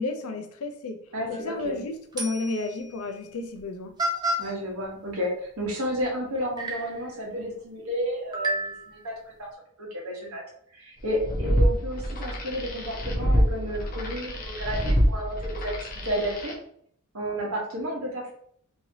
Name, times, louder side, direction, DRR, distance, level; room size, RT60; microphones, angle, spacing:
voice 1, 0.0-1.0 1.3-3.9, left 3 dB, 80° left, 6 dB, 0.5 m, -32 dB
voice 2, 1.1-1.8 4.4-5.3 5.6-9.5 9.8-10.4 10.7-15.7 16.0-16.5 17.1-18.3, equal, 75° right, -1 dB, 1.1 m, -31 dB
sound 1, 1.3-1.6 2.2-2.7 3.6-3.7 4.0-4.5 6.0-6.1 6.6-7.0 8.3-9.0, right 1 dB, 20° right, 0.5 m, -30 dB
sound 2, 11.0-16.5, equal, 40° left, 0.7 m, -26 dB
3.2 x 2.7 x 2.7 m, 0.64 s
head